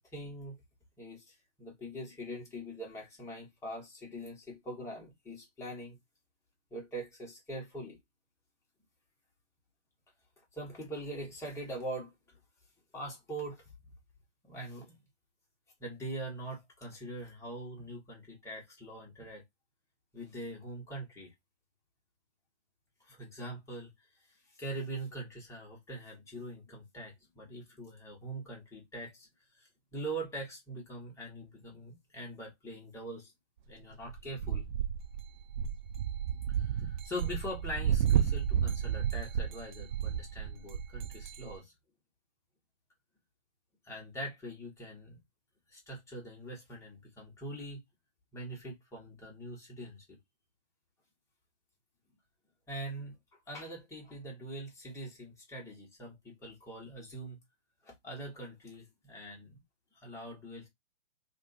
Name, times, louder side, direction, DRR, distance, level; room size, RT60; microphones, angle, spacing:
voice 1, 0.1-0.6 1.0-6.0 6.7-8.0 10.6-12.1 12.9-13.6 14.4-14.9 15.8-19.4 20.1-21.3 23.1-23.9 24.6-29.3 29.9-33.3 33.7-34.7 36.5-41.7 43.8-45.2 45.7-47.8 48.3-50.0 52.7-53.1 53.5-57.4 57.8-59.6 60.0-60.7, right 1 dB, 10° left, 1.4 m, -43 dB
sound 1, 34.0-41.6, right 9 dB, 40° right, 0.5 m, -32 dB
3.5 x 2.6 x 2.5 m
hypercardioid pair, 130°, 35 cm